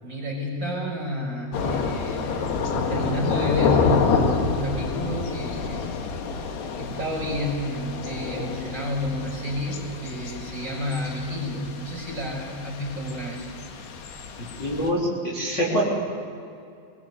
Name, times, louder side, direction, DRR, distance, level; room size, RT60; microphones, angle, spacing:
voice 1, 0.0-2.5 2.9-5.8 6.8-13.5, left 1 dB, 20° right, -3 dB, 6.2 m, -30 dB
Thunder / Rain, 1.5-14.9, left 5 dB, 75° left, 3.9 m, -28 dB
voice 2, 14.4-15.8, equal, 30° left, -5 dB, 4.0 m, -25 dB
23.5 x 21.0 x 8.3 m, 2.5 s
omnidirectional pair, 4.7 m